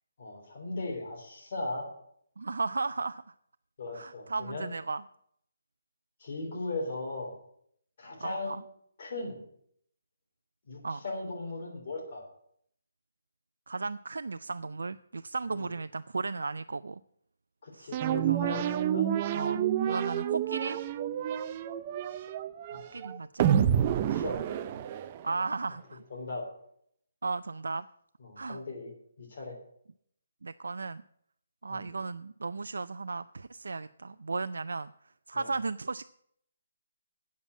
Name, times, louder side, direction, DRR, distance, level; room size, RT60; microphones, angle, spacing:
voice 1, 0.2-1.9 3.8-4.7 6.2-7.3 8.0-8.6 9.0-9.4 10.7-12.3 15.5-15.7 17.6-19.1 22.7-23.0 23.9-24.6 26.1-26.5 28.2-29.6 31.7-31.9 35.3-35.5, left 2 dB, 40° left, 0 dB, 3.3 m, -38 dB
voice 2, 2.4-3.3 3.9-5.0 8.2-8.6 10.8-11.0 13.7-17.0 17.7-18.0 18.3-18.7 19.3-20.8 22.9-23.7 25.2-26.0 27.2-27.9 28.4-28.6 30.4-31.0 31.6-34.9 35.3-36.0, right 3 dB, 90° right, 13 dB, 0.3 m, -35 dB
sound 1, 17.9-25.4, right 10 dB, 20° right, 0.4 m, -29 dB
8.5 x 7.3 x 8.2 m, 0.68 s
hypercardioid pair, 175°, 0 cm